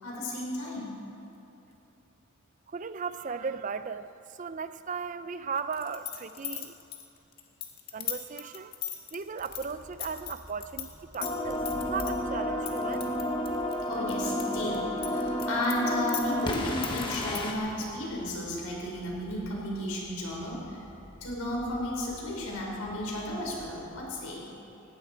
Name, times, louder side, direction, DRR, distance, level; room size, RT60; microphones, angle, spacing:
voice 1, 0.0-0.9 13.9-20.8 21.2-24.4, left 1 dB, 80° left, -3 dB, 4.9 m, -33 dB
voice 2, 2.7-6.8 7.9-8.8 9.1-13.2, right 5 dB, 35° right, 12 dB, 0.4 m, -37 dB
sound 1, 5.7-10.9 11.1-12.1 12.7-14.4 14.7-17.5, left 11 dB, 45° left, 1.6 m, -37 dB
sound 2, 9.4-24.0, equal, 15° right, 2.7 m, -51 dB
sound 3, 11.2-17.5, left 1 dB, 20° left, 1.2 m, -31 dB
19.5 x 16.5 x 4.5 m, 2.8 s
head